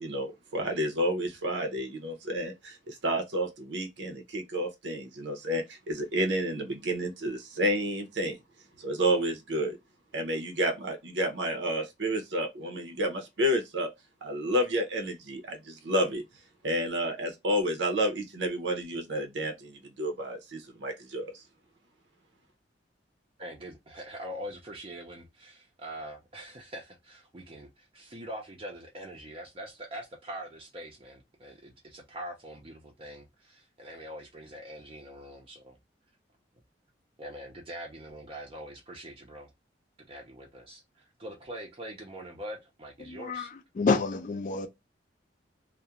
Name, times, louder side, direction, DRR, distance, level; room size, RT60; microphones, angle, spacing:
voice 1, 0.0-8.4 8.8-9.8 10.1-13.9 14.2-16.2 16.6-21.4, equal, 80° right, 0.6 m, -30 dB
voice 2, 23.4-35.8 37.2-39.5 40.1-40.8 41.2-43.5, right 1 dB, 30° right, 0.5 m, -43 dB
voice 3, 43.0-44.7, left 4 dB, 45° left, 0.4 m, -29 dB
2.3 x 2.1 x 2.8 m
head